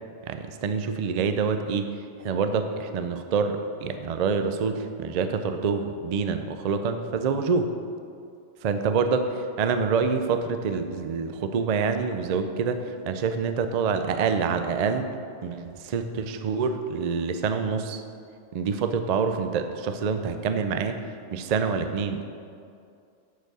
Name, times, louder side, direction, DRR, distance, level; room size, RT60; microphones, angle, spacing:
voice 1, 0.3-1.9 2.2-7.7 8.6-9.2 9.6-12.8 13.1-15.1 15.4-18.0 18.5-21.0 21.3-22.3, right 5 dB, 55° right, 8 dB, 0.4 m, -26 dB
8.2 x 4.5 x 6.2 m, 2.4 s
omnidirectional pair, 1.2 m